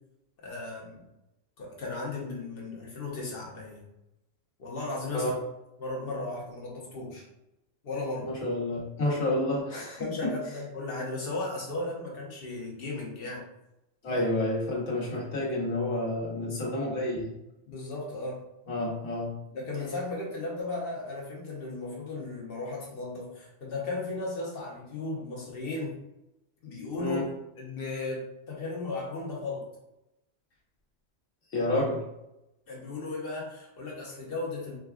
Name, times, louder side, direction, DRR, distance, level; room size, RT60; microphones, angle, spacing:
voice 1, 0.4-1.0 1.6-3.8 4.6-5.2 5.8-7.2 7.8-8.3 10.0-13.5 14.1-14.2 16.3-16.7 17.7-18.4 19.5-26.0 26.6-27.2 27.6-29.7 32.7-34.8, left 2 dB, 50° left, -3 dB, 1.1 m, -36 dB
voice 2, 8.2-10.3 14.0-17.3 18.7-19.4 27.0-27.3 31.5-32.0, left 1 dB, 85° left, -3 dB, 1.4 m, -29 dB
4.7 x 2.2 x 2.3 m, 0.90 s
omnidirectional pair, 1.2 m